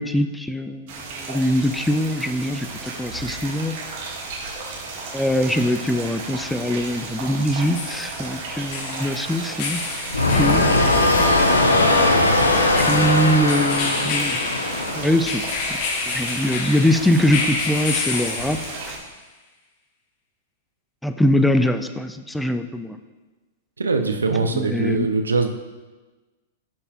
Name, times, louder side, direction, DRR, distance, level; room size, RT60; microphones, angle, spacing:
voice 1, 0.0-3.7 5.1-9.8 10.3-10.7 12.7-14.4 14.9-15.4 15.7-15.8 16.1-18.6 18.9-19.0 21.0-23.0 24.5-25.1, equal, 5° left, 9 dB, 0.4 m, -22 dB
sound 1, 0.9-19.0, right 3 dB, 55° right, 1.8 m, -34 dB
sound 2, 4.9-5.0 7.5-19.1, left 4 dB, 50° left, 0.9 m, -30 dB
sound 3, 10.1-15.3, left 2 dB, 85° left, 0.8 m, -19 dB
voice 2, 23.8-25.5, right 3 dB, 85° right, 6 dB, 0.6 m, -22 dB
10.5 x 5.5 x 2.4 m, 1.2 s
figure-of-eight pair, 105°, 0 cm